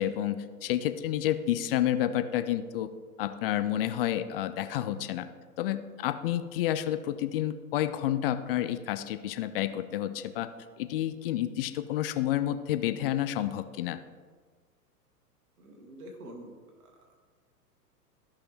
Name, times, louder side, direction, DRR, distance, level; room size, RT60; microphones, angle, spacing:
voice 1, 0.0-2.9 3.2-5.2 5.6-10.5 10.8-14.0, left 12 dB, 40° left, 11 dB, 0.5 m, -30 dB
voice 2, 15.6-17.1, right 1 dB, 70° right, 2 dB, 2.2 m, -47 dB
15.0 x 5.7 x 3.2 m, 1.5 s
figure-of-eight pair, 105°, 47 cm